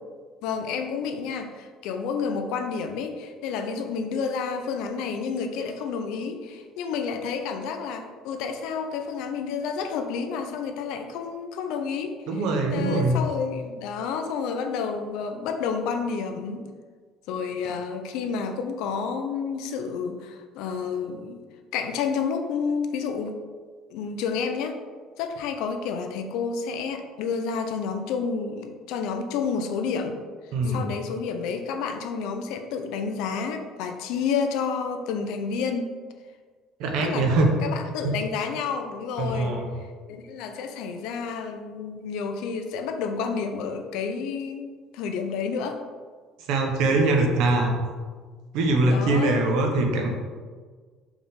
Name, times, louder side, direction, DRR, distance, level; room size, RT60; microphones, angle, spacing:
voice 1, 0.4-12.2 12.7-16.7 17.3-21.4 21.7-23.4 23.9-24.8 25.2-30.2 30.6-35.9 37.0-37.3 37.6-39.5 40.1-45.8 48.9-49.4, left 5 dB, 70° left, 6 dB, 0.7 m, -30 dB
voice 2, 12.3-13.2 30.5-30.8 36.8-37.5 38.0-38.1 39.2-39.7 46.5-47.7 48.5-50.1, right 2 dB, 65° right, 2 dB, 1.1 m, -22 dB
5.8 x 4.9 x 3.7 m, 1.5 s
cardioid pair, 180°, 0 cm